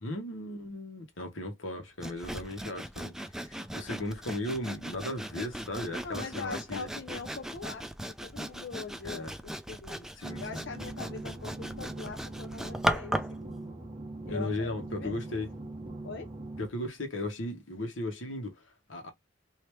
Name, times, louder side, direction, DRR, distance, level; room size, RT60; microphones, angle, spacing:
voice 1, 0.0-6.9 9.0-9.3 10.2-10.6 14.3-15.5 16.6-19.1, left 1 dB, 90° left, 1.2 m, -36 dB
Sawing, 2.0-13.4, equal, 5° right, 0.3 m, -37 dB
voice 2, 6.0-10.1 10.4-13.8 14.3-14.7 15.0-15.4 16.0-16.3, left 4 dB, 60° left, 0.6 m, -42 dB
sound 1, 10.2-16.7, right 2 dB, 25° right, 0.8 m, -42 dB
3.3 x 2.8 x 3.1 m
head